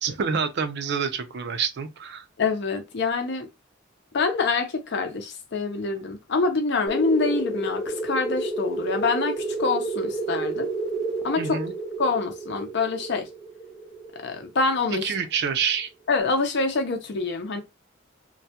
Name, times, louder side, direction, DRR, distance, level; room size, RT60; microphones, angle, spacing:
voice 1, 0.0-2.2 11.4-11.7 14.9-15.9, right 6 dB, 60° right, 0.5 m, -27 dB
voice 2, 2.4-3.5 4.1-10.7 11.2-11.6 12.0-13.3 14.2-15.1 16.1-17.6, left 4 dB, 60° left, 0.6 m, -26 dB
sound 1, 6.9-15.2, right 2 dB, 5° left, 0.4 m, -30 dB
2.2 x 2.1 x 2.7 m
head